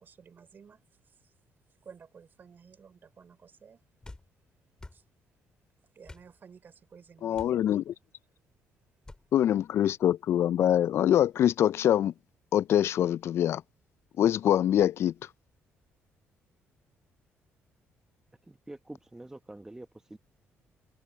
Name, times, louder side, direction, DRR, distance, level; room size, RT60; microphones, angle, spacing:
voice 1, 0.0-1.3 1.8-3.8 4.9-5.0 5.9-7.8, right 6 dB, 45° right, 3.6 m, -54 dB
sound 1, 4.0-4.3 4.8-5.0 6.0-6.3 7.3-7.6 9.0-9.2, left 2 dB, 15° left, 4.4 m, -47 dB
voice 2, 7.2-7.9 9.3-12.1 12.5-13.6 14.2-15.1, left 11 dB, 60° left, 0.3 m, -24 dB
voice 3, 18.5-20.2, right 1 dB, 10° right, 0.9 m, -46 dB
cardioid pair, 100°, 5 cm